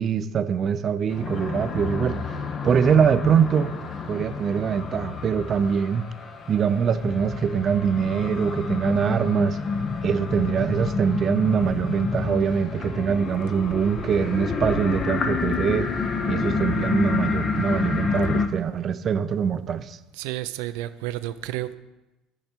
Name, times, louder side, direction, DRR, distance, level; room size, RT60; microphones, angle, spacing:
voice 1, 0.0-2.2 2.6-3.7 4.1-6.1 6.5-9.6 10.0-15.9 16.3-20.0, right 7 dB, 40° right, 11 dB, 0.5 m, -23 dB
sound 1, 1.1-18.5, left 4 dB, 35° left, 0.8 m, -29 dB
voice 2, 20.1-21.8, right 15 dB, 90° right, 11 dB, 0.5 m, -31 dB
12.0 x 4.8 x 4.5 m, 0.99 s
cardioid pair, 120°, 0 cm